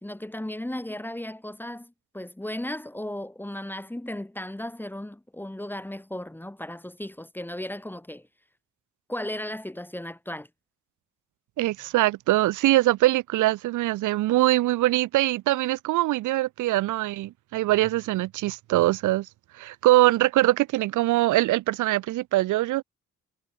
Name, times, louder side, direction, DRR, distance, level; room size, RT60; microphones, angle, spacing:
voice 1, 0.0-8.3 9.1-10.5, left 1 dB, 5° left, 1.4 m, -35 dB
voice 2, 11.6-19.3 19.6-22.8, right 17 dB, 80° right, 0.8 m, -23 dB
cardioid pair, 90°, 30 cm